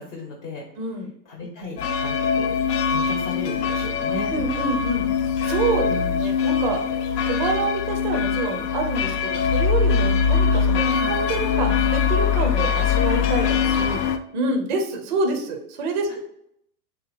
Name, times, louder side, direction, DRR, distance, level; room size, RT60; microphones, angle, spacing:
voice 1, 0.0-0.6 1.3-2.6 2.9-4.3 5.8-6.3 10.8-11.1, left 2 dB, 45° left, 1 dB, 0.9 m, -35 dB
voice 2, 0.8-1.1 4.3-5.1 5.4-6.8 7.2-14.0 14.3-16.2, right 3 dB, 35° right, 4 dB, 0.4 m, -27 dB
sound 1, 1.8-14.2, left 6 dB, 80° left, 0.6 m, -22 dB
3.5 x 2.8 x 4.0 m, 0.72 s
supercardioid pair, 165°, 49 cm